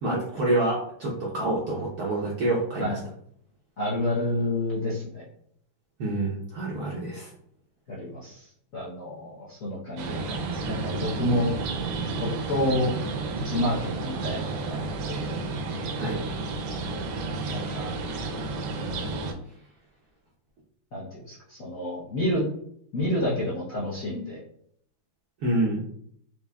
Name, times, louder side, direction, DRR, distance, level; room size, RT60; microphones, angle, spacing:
voice 1, 0.0-3.0 6.0-7.3 15.9-16.2 25.4-25.8, right 1 dB, 70° right, -5 dB, 0.9 m, -27 dB
voice 2, 3.8-5.2 7.9-8.4 8.7-11.5 12.2-12.9 13.4-15.2 17.5-17.9 20.9-22.5 22.9-24.4, left 1 dB, 60° left, -7 dB, 0.8 m, -29 dB
sound 1, 10.0-19.3, right 3 dB, 90° right, 1.5 m, -31 dB
4.7 x 2.6 x 2.2 m, 0.66 s
omnidirectional pair, 2.4 m